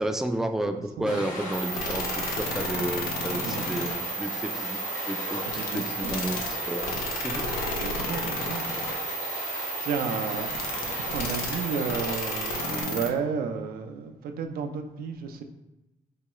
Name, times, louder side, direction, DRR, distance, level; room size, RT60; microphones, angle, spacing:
voice 1, 0.0-4.8 5.1-5.4 5.7-7.0 7.2-7.5, right 1 dB, 5° right, 7 dB, 0.3 m, -31 dB
voice 2, 0.6-1.2 3.4-3.7 5.4-6.3 7.7-10.5 11.0-15.4, right 5 dB, 90° right, 5 dB, 0.4 m, -33 dB
Stream, 1.1-12.8, left 1 dB, 60° left, 1.3 m, -36 dB
sound 1, 1.5-13.1, right 1 dB, 90° left, 0.6 m, -32 dB
4.7 x 2.2 x 3.0 m, 1.0 s
cardioid pair, 65°, 15 cm